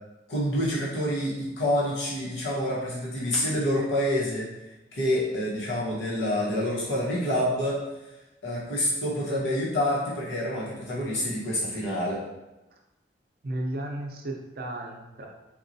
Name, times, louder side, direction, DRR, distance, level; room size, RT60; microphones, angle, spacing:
voice 1, 0.3-4.5 4.9-7.8 8.4-12.2, left 1 dB, 85° left, -6 dB, 1.0 m, -27 dB
voice 2, 13.4-15.3, right 1 dB, 55° right, 0 dB, 0.5 m, -34 dB
4.3 x 2.3 x 2.6 m, 1.0 s
head